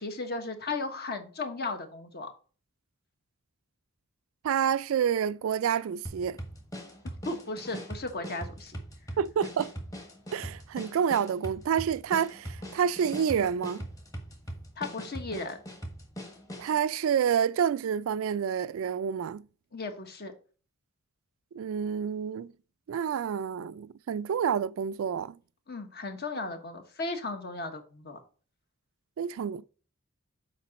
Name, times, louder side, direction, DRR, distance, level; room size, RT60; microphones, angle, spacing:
voice 1, 0.0-2.3 7.2-8.8 14.8-15.6 19.7-20.3 25.7-28.2, left 3 dB, 50° left, 1.3 m, -35 dB
voice 2, 4.4-6.4 9.2-9.7 10.3-13.8 16.6-19.5 21.5-22.5 22.9-25.4 29.2-29.7, right 8 dB, 70° right, 0.3 m, -28 dB
sound 1, 6.0-16.8, equal, 15° left, 1.3 m, -41 dB
7.4 x 4.9 x 4.1 m
head